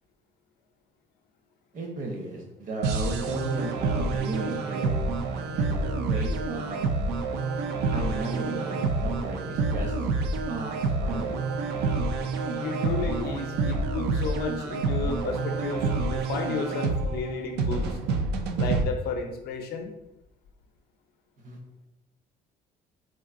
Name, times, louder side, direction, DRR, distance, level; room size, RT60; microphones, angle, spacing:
voice 1, 1.7-5.0 5.3-6.9 7.9-9.9 10.5-11.4 21.4-21.6, right 2 dB, 50° right, 1 dB, 0.9 m, -35 dB
sound 1, 2.8-18.8, right 3 dB, 80° right, 0.4 m, -28 dB
voice 2, 12.6-18.0 18.6-19.9, left 4 dB, 70° left, 5 dB, 0.6 m, -33 dB
3.9 x 2.5 x 2.5 m, 0.89 s
cardioid pair, 110°, 17 cm